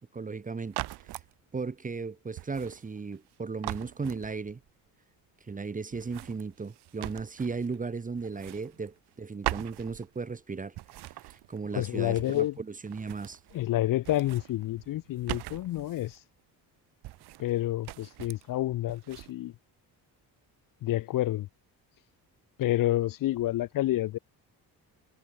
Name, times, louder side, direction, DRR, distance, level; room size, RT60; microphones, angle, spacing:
voice 1, 0.1-0.8 1.5-4.6 5.5-10.7 11.3-13.4, right 4 dB, 20° right, 0.9 m, -36 dB
sound 1, 0.7-1.3 2.4-3.3 3.6-4.7 5.9-7.8 8.2-9.2 9.4-10.4 10.7-12.6 12.8-13.7 14.0-16.2 17.0-17.6 17.8-18.5 18.9-19.3, right 17 dB, 75° right, 0.9 m, -41 dB
voice 2, 11.7-12.5 13.5-16.2 17.4-19.5 20.8-21.5 22.6-24.2, left 14 dB, 55° left, 0.5 m, -29 dB
cardioid pair, 90°, 39 cm